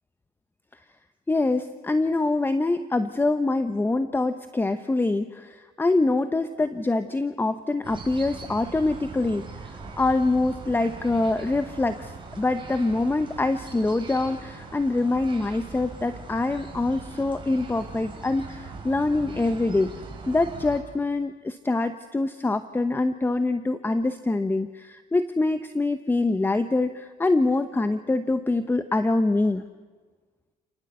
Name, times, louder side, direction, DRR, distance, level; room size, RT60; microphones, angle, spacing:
voice 1, 1.3-9.5 10.0-19.9 20.3-29.6, left 2 dB, 10° left, 10 dB, 0.9 m, -25 dB
sound 1, 7.8-20.8, right 4 dB, 30° right, 6.5 m, -41 dB
29.0 x 19.5 x 8.1 m, 1.4 s
cardioid pair, 110°, 17 cm